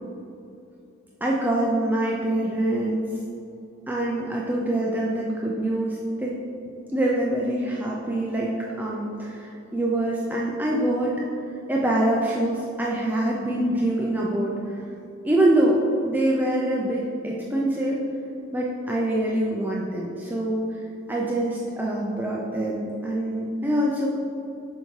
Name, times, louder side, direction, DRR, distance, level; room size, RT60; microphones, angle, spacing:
voice 1, 1.2-3.1 3.9-6.4 6.9-8.5 8.8-11.2 11.7-14.8 15.2-18.0 18.5-24.1, right 1 dB, 10° right, -4 dB, 0.4 m, -25 dB
6.7 x 4.5 x 3.2 m, 2.8 s
head